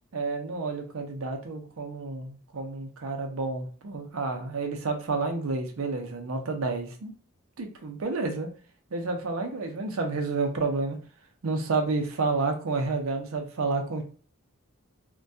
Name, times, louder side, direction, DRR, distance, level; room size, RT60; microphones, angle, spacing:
voice 1, 0.1-7.1 7.6-8.5 8.9-11.0 11.4-14.0, right 3 dB, 90° right, 4 dB, 0.5 m, -30 dB
2.2 x 2.2 x 2.6 m, 0.40 s
head